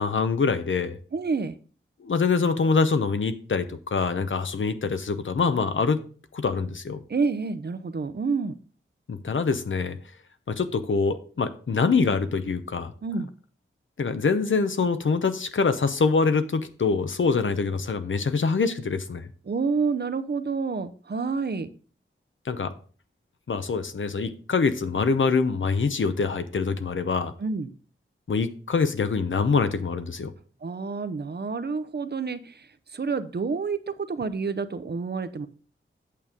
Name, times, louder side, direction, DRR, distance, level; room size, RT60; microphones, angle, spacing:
voice 1, 0.0-1.0 2.0-6.0 6.3-7.0 9.1-10.0 10.5-12.9 14.0-19.3 22.5-22.7 23.5-27.3 28.3-30.3, left 4 dB, 70° left, 10 dB, 0.8 m, -25 dB
voice 2, 1.1-1.6 7.1-8.5 13.0-13.3 19.4-21.7 27.4-27.7 30.6-35.5, right 4 dB, 50° right, 12 dB, 0.7 m, -28 dB
8.5 x 6.9 x 3.6 m, 0.40 s
wide cardioid pair, 85°, 21 cm